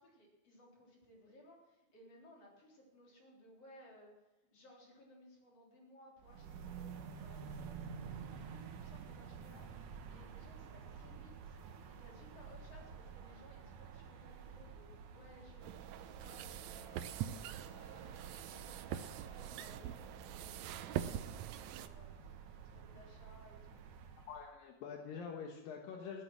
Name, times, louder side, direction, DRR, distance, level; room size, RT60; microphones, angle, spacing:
voice 1, 0.0-4.3 4.5-23.8, left 1 dB, 45° left, -2 dB, 4.7 m, -61 dB
sound 1, 6.2-24.5, right 6 dB, 70° right, 2.7 m, -51 dB
sound 2, 15.6-21.9, right 10 dB, 85° right, 1.6 m, -44 dB
voice 2, 24.3-26.2, left 6 dB, 75° left, 2 dB, 3.0 m, -46 dB
14.0 x 12.0 x 6.2 m, 1.0 s
omnidirectional pair, 4.1 m